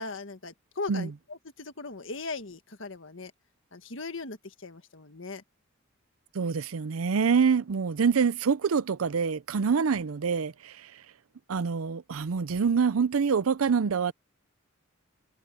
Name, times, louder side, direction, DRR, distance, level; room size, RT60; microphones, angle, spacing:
voice 1, 0.0-3.3 3.7-5.4, left 3 dB, 65° left, 1.7 m, -39 dB
voice 2, 6.3-10.9 11.5-14.1, right 6 dB, 90° right, 0.5 m, -26 dB
head